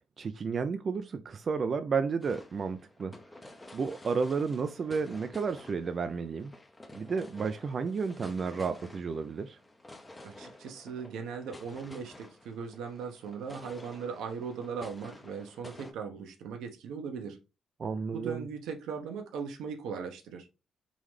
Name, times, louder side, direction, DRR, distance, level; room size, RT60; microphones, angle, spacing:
voice 1, 0.2-3.1 3.7-6.5 6.9-9.6 17.8-18.5, right 5 dB, 45° right, 0.4 m, -32 dB
sound 1, 2.2-15.9, left 1 dB, 15° left, 0.7 m, -51 dB
voice 2, 10.2-17.4 18.1-20.5, right 6 dB, 85° right, 0.9 m, -39 dB
3.8 x 3.1 x 3.2 m
cardioid pair, 90°, 0 cm